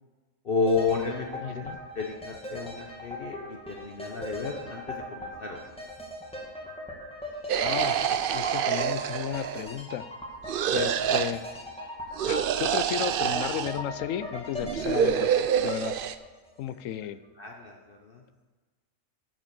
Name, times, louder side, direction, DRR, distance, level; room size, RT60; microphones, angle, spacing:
voice 1, 0.4-1.6 1.9-5.6 17.4-18.2, left 4 dB, 45° left, 1 dB, 1.0 m, -31 dB
sound 1, 0.7-16.6 16.9-17.0, left 1 dB, 5° left, 1.8 m, -40 dB
voice 2, 1.4-1.8 7.6-10.0 10.7-11.4 12.2-16.0 16.6-17.2, left 10 dB, 75° left, 13 dB, 0.9 m, -34 dB
sound 2, 7.5-9.8 10.5-11.3 12.2-13.8 14.6-16.2, right 8 dB, 70° right, 0.5 m, -27 dB
11.0 x 5.4 x 6.9 m, 1.3 s
omnidirectional pair, 1.4 m